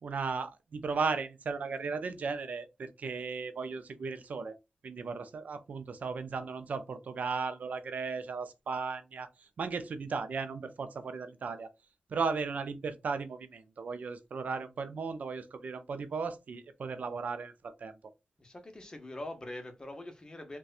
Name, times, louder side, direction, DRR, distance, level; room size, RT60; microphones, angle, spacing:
voice 1, 0.0-4.5 4.8-9.3 9.6-11.7 12.1-17.9, right 4 dB, 70° right, 0.5 m, -36 dB
voice 2, 18.4-20.6, left 1 dB, 30° left, 0.9 m, -43 dB
4.1 x 2.2 x 2.4 m
cardioid pair, 70°, 3 cm